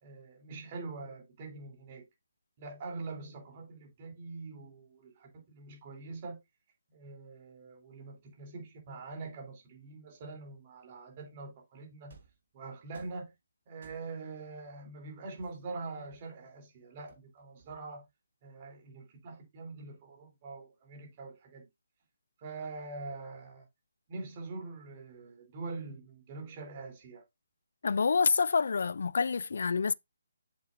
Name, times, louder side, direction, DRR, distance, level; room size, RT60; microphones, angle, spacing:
voice 1, 0.0-2.1 2.6-6.4 6.9-12.1 12.5-13.3 13.7-18.0 18.4-21.7 22.4-23.7 24.1-27.2, right 3 dB, 35° right, 3.2 m, -44 dB
sound 1, 12.1-12.5 12.9-13.3 13.8-14.3 15.4-16.5 17.1-18.1, right 5 dB, 60° right, 3.8 m, -59 dB
voice 2, 27.8-29.9, left 5 dB, 65° left, 0.3 m, -27 dB
7.5 x 6.9 x 2.6 m
figure-of-eight pair, 150°, 0 cm